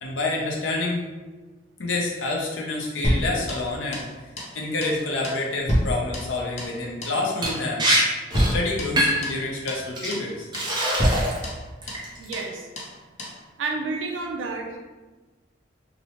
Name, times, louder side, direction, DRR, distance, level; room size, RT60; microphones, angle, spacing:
voice 1, 0.0-1.0 1.8-4.0 4.5-7.9 8.5-10.5, left 2 dB, 85° left, -1 dB, 0.6 m, -28 dB
sound 1, 3.0-4.1 4.4-4.6 4.8-5.0 5.2-6.8 7.0-7.2 7.5-7.6 7.9-8.1 8.3-9.4 9.7-9.8 10.1-10.3 10.5-10.7 11.0-12.1 12.3-12.5 12.8-12.9 13.2-13.4, equal, 35° left, 0.5 m, -27 dB
Liquid, 7.4-7.5 7.8-8.0 8.3-8.6 9.0-9.3 10.0-10.1 10.5-11.4 11.8-12.3, right 1 dB, 25° right, 0.5 m, -23 dB
voice 2, 12.2-12.7 13.6-14.8, right 3 dB, 85° right, 1 dB, 0.4 m, -30 dB
2.9 x 2.0 x 2.9 m, 1.3 s
head